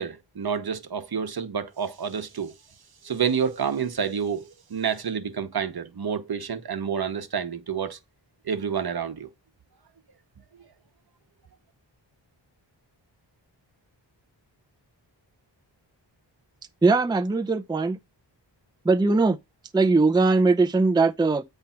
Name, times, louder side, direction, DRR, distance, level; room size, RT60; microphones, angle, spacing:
voice 1, 0.0-2.5 3.0-8.0 8.4-9.3, right 7 dB, 55° right, 1.0 m, -29 dB
voice 2, 16.8-18.0 18.8-19.4 19.7-21.4, right 3 dB, 10° right, 0.5 m, -20 dB
8.1 x 3.3 x 5.7 m
wide cardioid pair, 75°, 45 cm